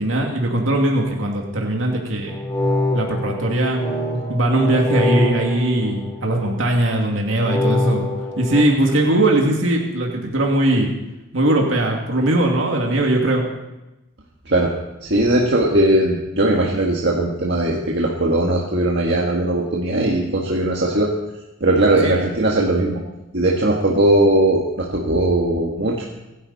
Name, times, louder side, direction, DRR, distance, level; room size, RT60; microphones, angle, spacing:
voice 1, 0.0-2.4 2.9-3.8 4.3-8.1 8.4-10.9 11.3-13.4 22.0-22.1, right 1 dB, 75° right, 0 dB, 2.5 m, -20 dB
sound 1, 2.3-6.6 7.5-8.6, left 1 dB, 20° left, 3.4 m, -24 dB
voice 2, 15.0-21.1 21.6-23.0 23.3-26.1, right 1 dB, 55° right, -2 dB, 1.8 m, -19 dB
25.5 x 11.5 x 4.2 m, 0.99 s
head